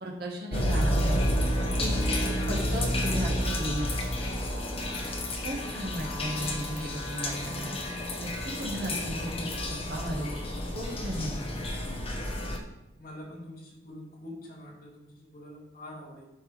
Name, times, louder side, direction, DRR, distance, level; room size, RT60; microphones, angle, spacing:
voice 1, 0.0-1.2 1.8-3.9 5.4-7.8 8.2-9.5 9.9-10.3 10.7-11.5, equal, 55° right, -2 dB, 1.7 m, -35 dB
sound 1, 0.5-12.6, left 1 dB, 30° left, 1.1 m, -30 dB
voice 2, 13.0-16.2, left 1 dB, 50° left, -5 dB, 2.7 m, -45 dB
12.5 x 4.6 x 3.4 m, 0.92 s
head